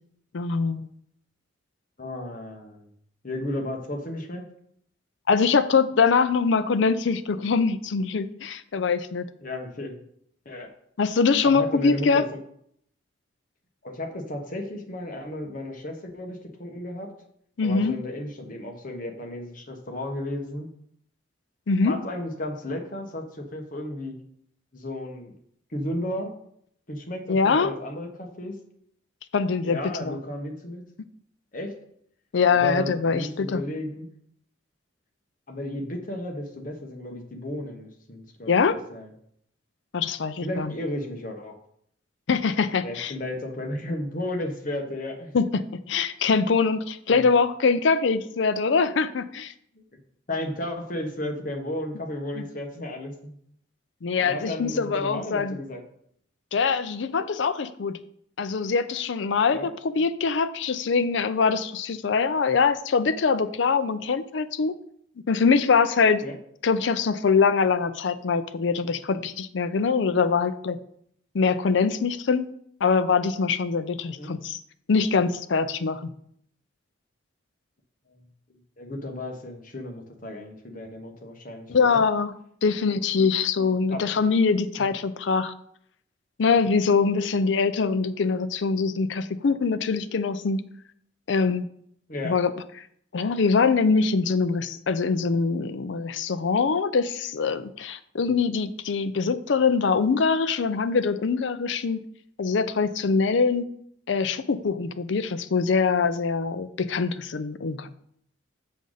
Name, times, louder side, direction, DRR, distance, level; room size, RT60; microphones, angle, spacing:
voice 1, 0.3-0.9 5.3-9.3 11.0-12.2 17.6-18.0 21.7-22.0 27.3-27.7 29.3-30.2 32.3-33.6 38.5-38.8 39.9-40.7 42.3-43.1 45.3-49.5 52.4-52.5 54.0-55.6 56.5-58.0 58.4-59.6 60.0-64.7 65.3-66.2 66.6-70.8 71.3-72.4 72.8-74.6 74.9-76.1 81.7-82.3 82.6-85.5 86.4-90.6 91.3-91.7 92.2-92.5 93.1-102.0 102.4-103.7 104.1-107.9, left 5 dB, 65° left, 13 dB, 0.5 m, -23 dB
voice 2, 2.0-2.9 3.2-4.4 9.4-10.0 10.4-10.7 11.4-12.2 13.8-17.1 17.6-20.7 21.8-24.1 24.7-25.3 25.7-26.3 26.9-28.5 29.6-30.8 31.5-31.7 32.5-34.1 35.5-39.1 40.4-41.6 42.8-45.3 47.1-47.3 49.7-49.8 50.3-53.3 54.2-55.8 59.5-59.7 66.2-66.4 74.1-74.3 78.1-78.2 78.5-82.0 83.9-84.0 84.8-84.9 92.1-92.3, left 1 dB, 45° left, 2 dB, 1.2 m, -34 dB
6.9 x 6.3 x 3.9 m, 0.68 s
head